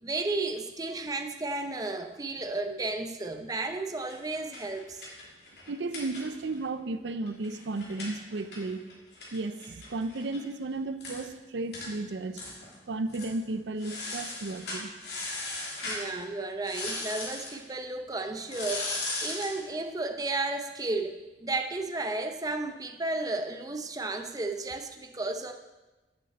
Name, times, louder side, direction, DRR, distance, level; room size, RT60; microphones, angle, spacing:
voice 1, 0.0-5.0 15.9-25.5, right 2 dB, 20° right, 5 dB, 0.7 m, -33 dB
sound 1, 4.0-6.6 6.9-7.0 7.3-10.4 10.7-10.8 11.0-11.2 11.7-11.9 12.3-12.8 13.1-13.3 13.8-16.1 16.6-17.6 18.5-19.6, left 2 dB, 65° left, 2.9 m, -38 dB
voice 2, 5.7-8.8 9.3-12.4 12.9-14.9, right 2 dB, 80° right, 10 dB, 0.6 m, -34 dB
8.3 x 6.3 x 7.8 m, 1.1 s
head